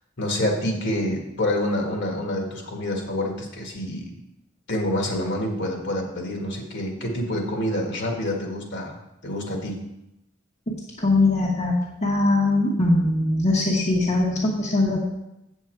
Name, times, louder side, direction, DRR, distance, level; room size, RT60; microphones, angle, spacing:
voice 1, 0.2-4.1 4.7-9.8, left 1 dB, 60° left, 1 dB, 1.7 m, -27 dB
voice 2, 11.0-15.0, left 2 dB, 35° left, -2 dB, 1.1 m, -21 dB
8.0 x 7.3 x 4.6 m, 0.90 s
head